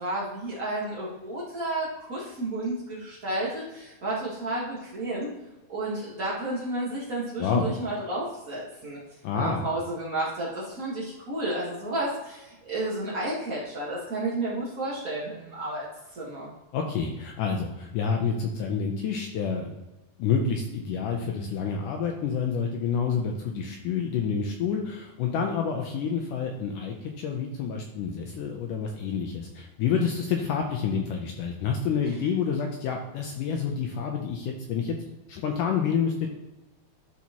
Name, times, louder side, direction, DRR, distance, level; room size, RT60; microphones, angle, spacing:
voice 1, 0.0-5.3 5.7-9.0 9.3-15.9 16.1-16.5, right 1 dB, 80° right, -7 dB, 0.7 m, -31 dB
voice 2, 9.2-9.6 16.7-19.8 20.2-35.0 35.3-36.3, left 6 dB, 80° left, 2 dB, 1.9 m, -28 dB
12.0 x 4.2 x 2.9 m, 1.0 s
omnidirectional pair, 4.3 m